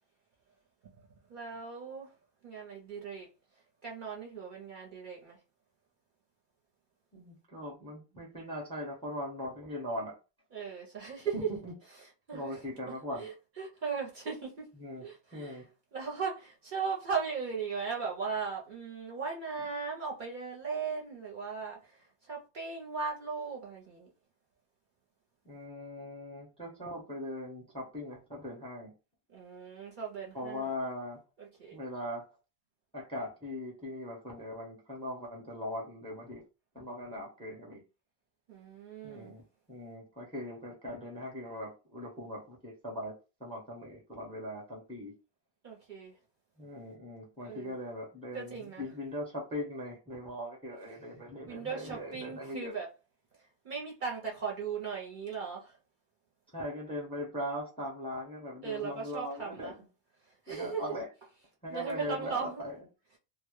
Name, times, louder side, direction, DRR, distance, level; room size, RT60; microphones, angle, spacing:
voice 1, 1.0-2.1 2.4-3.3 3.8-5.4 10.5-11.5 12.3-12.8 13.2-14.7 15.0-15.6 15.9-24.1 29.3-30.7 31.4-31.8 38.5-39.3 45.6-46.2 47.4-47.7 48.3-48.8 51.5-52.9 53.6-55.8 58.6-59.7 60.4-60.8 61.7-62.6, right 5 dB, 55° right, 0.7 m, -38 dB
voice 2, 7.1-10.2 11.3-11.7 12.3-13.3 14.8-15.0 15.3-15.6 25.4-28.9 30.3-31.2 31.7-32.3 32.9-36.4 36.7-37.8 39.0-43.1 43.4-45.1 46.6-52.7 56.5-59.8 60.5-61.1 61.6-62.7, left 1 dB, 5° left, 0.6 m, -40 dB
2.0 x 2.0 x 3.0 m
omnidirectional pair, 1.1 m